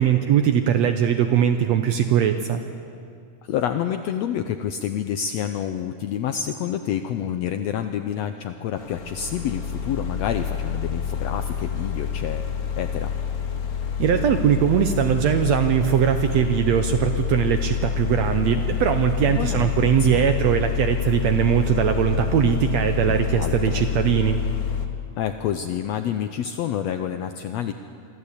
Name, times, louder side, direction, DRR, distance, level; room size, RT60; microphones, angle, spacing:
voice 1, 0.0-2.6 14.0-24.4, right 9 dB, 70° right, 7 dB, 1.7 m, -20 dB
voice 2, 3.5-12.5 12.8-13.1 19.2-20.2 23.1-23.8 25.2-27.7, left 9 dB, 85° left, 8 dB, 1.5 m, -28 dB
sound 1, 8.8-24.9, left 7 dB, 65° left, 0.8 m, -27 dB
24.5 x 14.0 x 8.3 m, 2.3 s
omnidirectional pair, 3.7 m